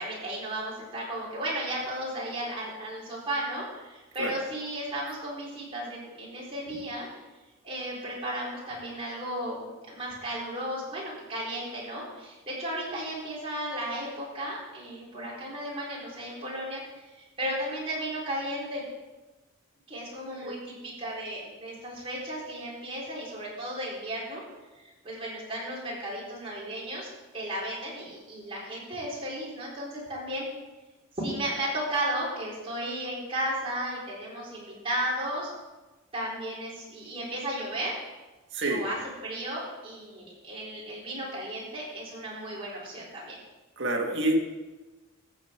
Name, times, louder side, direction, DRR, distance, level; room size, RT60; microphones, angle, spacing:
voice 1, 0.0-7.1 7.6-9.6 9.9-16.8 17.4-18.8 19.9-24.4 24.7-27.1 27.3-30.5 31.1-35.5 36.1-37.9 38.6-39.0 39.2-43.4, right 1 dB, 25° right, -5 dB, 4.1 m, -34 dB
voice 2, 38.5-38.8 43.8-44.4, right 1 dB, 60° right, 1 dB, 1.8 m, -27 dB
14.5 x 8.1 x 4.5 m, 1.2 s
head